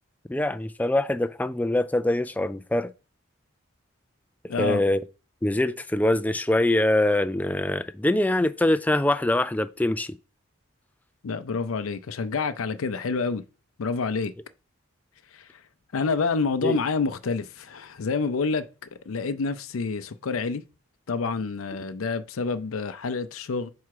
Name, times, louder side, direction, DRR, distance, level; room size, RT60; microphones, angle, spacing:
voice 1, 0.3-2.9 4.4-5.0 5.4-10.2 16.6-16.8, left 1 dB, 10° left, 0.3 m, -24 dB
voice 2, 4.5-4.8 11.2-13.4 13.8-14.3 15.3-15.4 15.9-18.7 19.1-20.6 21.1-23.7, left 4 dB, 90° left, 0.5 m, -28 dB
5.8 x 4.7 x 4.7 m
head